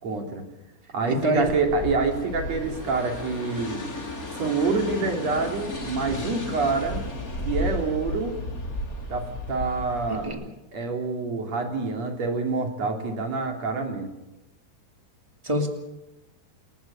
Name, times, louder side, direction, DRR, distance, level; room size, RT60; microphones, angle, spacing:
voice 1, 0.0-0.4 0.9-3.8 4.3-7.0 7.4-8.4 9.1-10.3 10.7-14.1, right 4 dB, 45° right, 4 dB, 3.6 m, -27 dB
voice 2, 1.1-1.5 10.1-10.5 15.4-15.7, right 1 dB, 10° right, 3 dB, 2.2 m, -25 dB
sound 1, 1.3-10.3, left 1 dB, 20° left, 3.3 m, -33 dB
29.0 x 14.0 x 8.5 m, 0.97 s
omnidirectional pair, 4.7 m